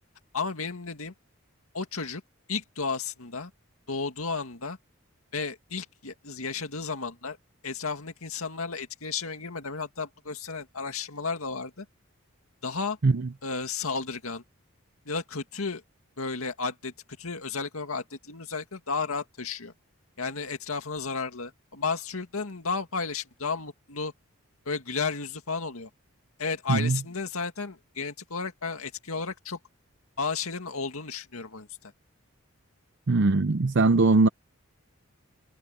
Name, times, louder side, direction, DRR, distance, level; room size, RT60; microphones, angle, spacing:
voice 1, 0.3-1.1 1.7-2.2 2.5-3.5 3.9-4.8 5.3-7.4 7.6-11.9 12.6-13.0 13.4-14.4 15.1-15.8 16.2-16.9 17.2-19.7 20.2-24.1 24.7-25.9 26.4-29.6 30.2-31.9, left 4 dB, 80° left, 2.1 m, -33 dB
voice 2, 26.7-27.0 33.1-34.3, right 3 dB, 55° right, 0.6 m, -21 dB
head